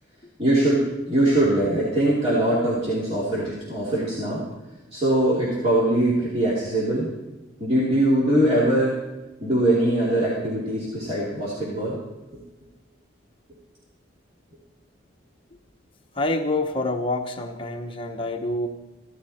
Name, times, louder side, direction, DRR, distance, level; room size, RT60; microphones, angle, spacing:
voice 1, 0.4-4.4 4.9-7.1 7.6-8.9 9.4-12.0, right 1 dB, 30° right, -8 dB, 2.9 m, -22 dB
voice 2, 16.1-18.7, left 2 dB, 25° left, 3 dB, 1.0 m, -27 dB
16.0 x 13.0 x 4.3 m, 1.1 s
head